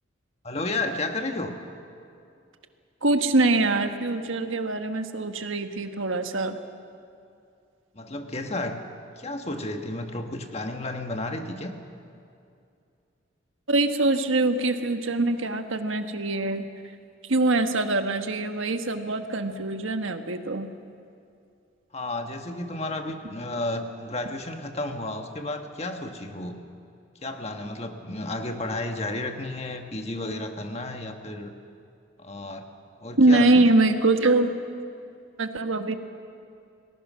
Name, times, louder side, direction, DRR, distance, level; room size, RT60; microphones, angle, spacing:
voice 1, 0.4-1.6 7.9-8.8 9.2-11.7 21.9-26.6 27.2-31.5 32.2-32.7 33.0-33.6, left 2 dB, 30° left, 5 dB, 1.4 m, -32 dB
voice 2, 3.0-6.6 13.7-16.7 17.3-20.7 33.2-34.5 35.4-35.9, right 2 dB, 85° right, 7 dB, 1.4 m, -23 dB
29.0 x 19.5 x 6.3 m, 2.5 s
head